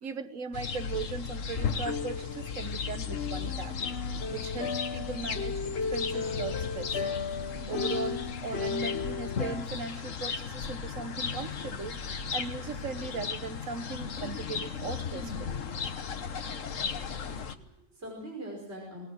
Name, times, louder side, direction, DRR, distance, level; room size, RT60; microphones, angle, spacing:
voice 1, 0.0-3.7 4.3-7.0 7.7-12.0 12.3-15.6, right 5 dB, 85° right, 10 dB, 1.6 m, -38 dB
sound 1, 0.5-17.6, left 6 dB, 80° left, 1.5 m, -36 dB
sound 2, 1.9-9.7, left 5 dB, 55° left, 1.3 m, -35 dB
voice 2, 17.1-19.1, right 1 dB, 55° right, -1 dB, 5.8 m, -43 dB
29.0 x 19.0 x 6.3 m, 0.77 s
omnidirectional pair, 1.3 m